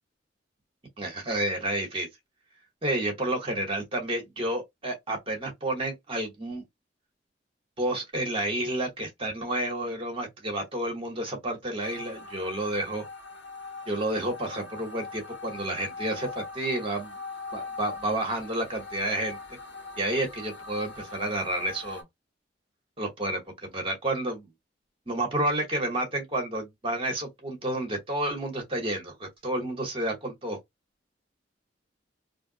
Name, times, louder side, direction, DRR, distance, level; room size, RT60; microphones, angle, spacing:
voice 1, 1.0-2.1 2.8-6.6 7.8-13.1 13.9-17.2 17.5-19.4 20.0-22.0 23.0-24.5 25.1-30.6, right 1 dB, 30° right, 1.0 m, -30 dB
sound 1, 11.8-22.0, left 3 dB, 70° left, 1.0 m, -42 dB
2.6 x 2.2 x 3.7 m
head